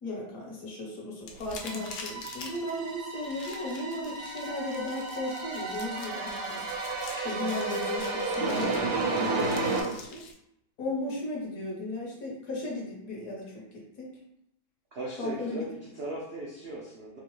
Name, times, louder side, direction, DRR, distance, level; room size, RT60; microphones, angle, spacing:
voice 1, 0.0-6.6 7.2-10.2 10.8-14.2 15.2-15.6, left 2 dB, 60° left, -2 dB, 1.2 m, -36 dB
sound 1, 1.2-10.3, left 4 dB, 90° left, 1.3 m, -46 dB
sound 2, 1.6-9.8, right 3 dB, 85° right, 1.4 m, -32 dB
voice 2, 9.6-10.0 14.9-17.2, right 1 dB, 65° right, -5 dB, 0.6 m, -38 dB
3.8 x 2.4 x 3.0 m, 0.81 s
omnidirectional pair, 1.8 m